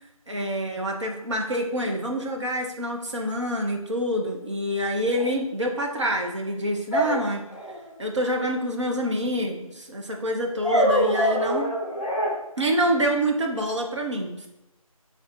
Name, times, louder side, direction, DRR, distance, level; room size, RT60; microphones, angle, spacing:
voice 1, 0.3-7.5 8.0-11.7 12.6-14.5, equal, 50° right, 2 dB, 0.8 m, -26 dB
sound 1, 5.2-5.3 6.9-7.8 10.6-12.3, equal, 15° left, 0.8 m, -24 dB
5.8 x 3.5 x 2.5 m, 0.93 s
figure-of-eight pair, 165°, 19 cm